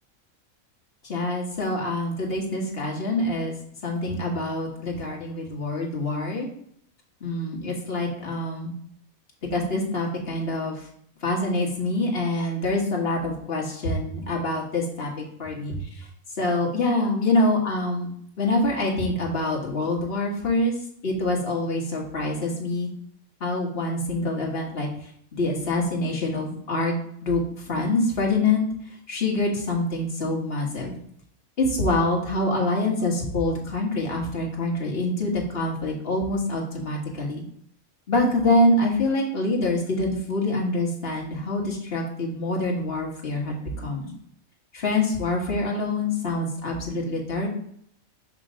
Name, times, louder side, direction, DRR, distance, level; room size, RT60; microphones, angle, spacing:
voice 1, 1.1-3.5 3.8-6.5 7.2-8.7 9.5-10.8 11.2-15.8 16.4-18.1 18.4-20.7 21.0-22.9 23.4-24.9 25.3-26.9 27.2-27.4 27.7-28.7 29.1-31.0 31.6-37.4 38.1-44.1 44.7-47.5, left 2 dB, 45° left, -1 dB, 1.5 m, -25 dB
6.4 x 3.0 x 5.0 m, 0.66 s
omnidirectional pair, 1.5 m